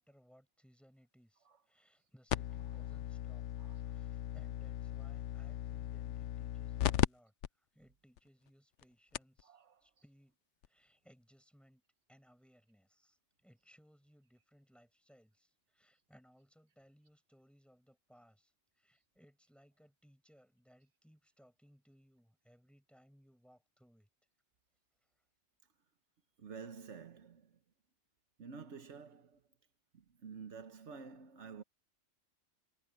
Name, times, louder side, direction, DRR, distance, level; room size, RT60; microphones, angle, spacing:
voice 1, 0.0-3.5 3.8-10.3 10.6-11.8 12.1-24.1 25.0-25.1, equal, ahead, 5.9 m, -66 dB
sound 1, 2.3-7.1 7.4-7.5 8.2-8.3 8.8-8.9 9.1-9.4 10.6-10.7, left 12 dB, 85° left, 0.9 m, -37 dB
voice 2, 2.5-3.0 3.6-4.0 9.4-10.1 26.4-27.6 28.4-29.4 29.9-31.6, right 5 dB, 80° right, 1.4 m, -51 dB
omnidirectional pair, 1.2 m